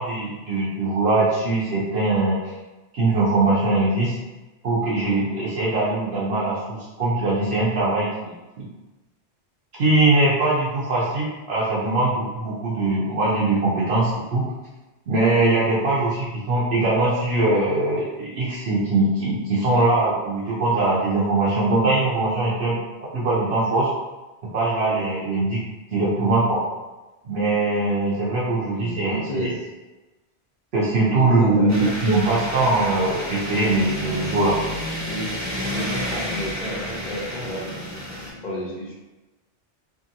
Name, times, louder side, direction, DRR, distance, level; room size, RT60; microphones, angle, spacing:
voice 1, 0.0-2.5 2.9-4.2 4.6-8.7 9.8-14.4 15.1-22.8 23.1-23.9 24.5-25.6 25.9-26.6 27.2-29.5 30.7-34.6, right 2 dB, 70° right, -6 dB, 0.9 m, -21 dB
voice 2, 28.6-29.6 31.0-31.9 33.7-34.1 35.0-35.3 35.6-38.9, equal, 50° left, -5 dB, 0.9 m, -32 dB
sound 1, 31.7-38.3, equal, 20° right, 0.5 m, -30 dB
2.8 x 2.6 x 2.6 m, 1.1 s
omnidirectional pair, 1.1 m